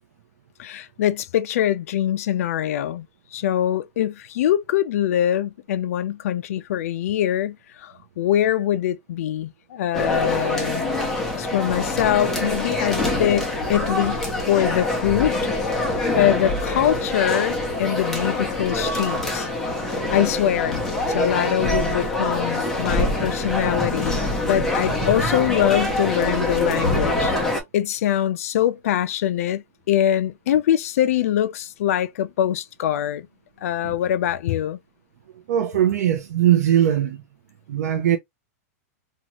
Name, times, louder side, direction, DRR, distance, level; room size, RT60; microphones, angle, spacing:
voice 1, 0.6-3.1 3.3-10.9 11.3-14.2 14.5-15.4 16.2-19.5 20.1-20.8 21.1-27.3 27.7-33.3 33.6-34.8, left 11 dB, 60° left, 0.3 m, -23 dB
sound 1, 9.9-27.6, left 2 dB, 5° left, 0.6 m, -24 dB
voice 2, 35.5-37.2 37.7-38.2, right 11 dB, 80° right, 0.6 m, -20 dB
2.6 x 2.3 x 2.8 m
supercardioid pair, 175°, 9 cm